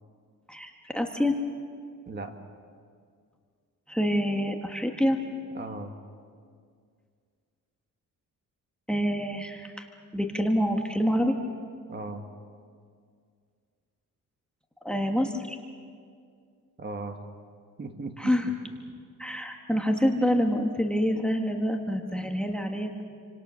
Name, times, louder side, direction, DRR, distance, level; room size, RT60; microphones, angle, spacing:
voice 1, 0.5-1.4 3.9-5.2 8.9-9.9 10.1-11.3 14.8-15.6 18.2-18.5 19.2-22.9, equal, 5° left, 3 dB, 1.5 m, -26 dB
voice 2, 5.5-5.9 11.9-12.3 16.8-17.2 17.8-18.5, right 3 dB, 30° right, 5 dB, 1.8 m, -37 dB
28.0 x 25.0 x 6.4 m, 2.2 s
cardioid pair, 140°, 33 cm